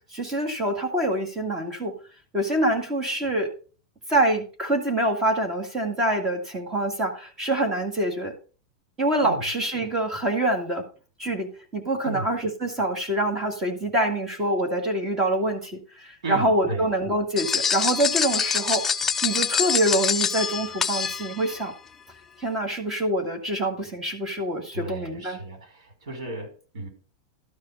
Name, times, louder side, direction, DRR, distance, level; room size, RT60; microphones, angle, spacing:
voice 1, 0.1-2.0 2.3-3.5 4.1-8.3 9.0-10.8 11.2-18.9 19.2-21.7 22.4-25.4, right 1 dB, 15° right, 4 dB, 1.9 m, -25 dB
voice 2, 16.2-16.9 24.7-26.9, right 2 dB, 85° right, 5 dB, 5.2 m, -34 dB
sound 1, 17.4-21.6, left 6 dB, 10° left, 0.4 m, -25 dB
12.5 x 4.9 x 5.5 m, 0.37 s
supercardioid pair, 170°, 3 cm